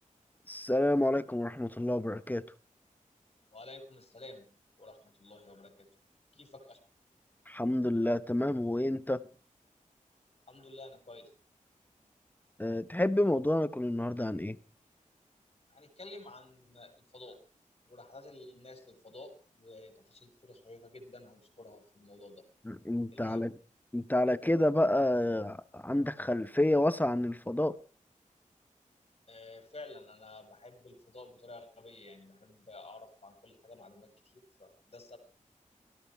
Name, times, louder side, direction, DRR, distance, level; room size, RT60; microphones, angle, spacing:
voice 1, 0.5-2.4 7.5-9.2 12.6-14.6 22.6-23.5 23.9-27.8, left 1 dB, 10° left, 0.8 m, -29 dB
voice 2, 3.5-4.5 4.8-5.9 6.3-6.8 10.5-11.3 15.7-17.4 17.8-22.4 23.1-23.5 29.3-35.2, left 2 dB, 45° left, 4.4 m, -51 dB
18.5 x 13.5 x 4.5 m
wide cardioid pair, 95°, 14 cm